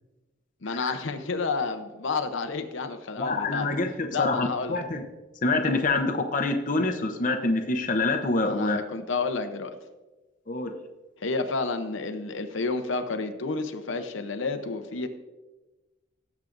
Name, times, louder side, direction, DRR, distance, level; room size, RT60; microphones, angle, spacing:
voice 1, 0.6-3.7 4.1-4.8 8.4-9.8 11.2-15.1, left 4 dB, 75° left, 7 dB, 0.7 m, -30 dB
voice 2, 3.2-5.0 5.4-8.8 10.5-10.7, left 2 dB, 40° left, 4 dB, 0.7 m, -26 dB
17.5 x 7.3 x 2.6 m, 1.1 s
head